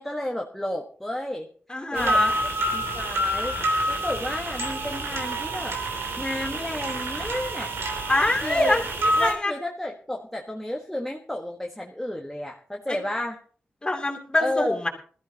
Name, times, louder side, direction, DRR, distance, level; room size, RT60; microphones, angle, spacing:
voice 1, 0.0-1.5 1.9-3.6 3.9-5.8 6.2-7.7 8.4-8.9 9.2-13.4 14.4-14.8, left 1 dB, 5° left, 0 dB, 1.3 m, -32 dB
voice 2, 1.7-2.3 8.1-9.5 12.9-13.0 13.8-14.9, left 2 dB, 20° left, 2 dB, 2.9 m, -25 dB
sound 1, 1.9-9.3, right 1 dB, 90° right, 3.2 m, -27 dB
20.0 x 13.5 x 2.9 m, 0.44 s
wide cardioid pair, 80°, 4 cm